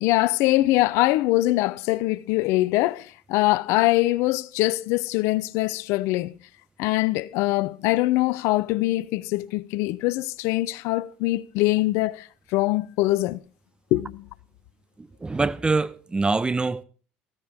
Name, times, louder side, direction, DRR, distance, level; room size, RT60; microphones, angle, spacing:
voice 1, 0.0-6.3 6.8-13.4 13.9-14.3, left 18 dB, 70° left, 0.6 m, -23 dB
voice 2, 15.0-16.8, right 3 dB, 20° right, 1.0 m, -25 dB
15.0 x 14.5 x 3.6 m
hypercardioid pair, 70°, 5 cm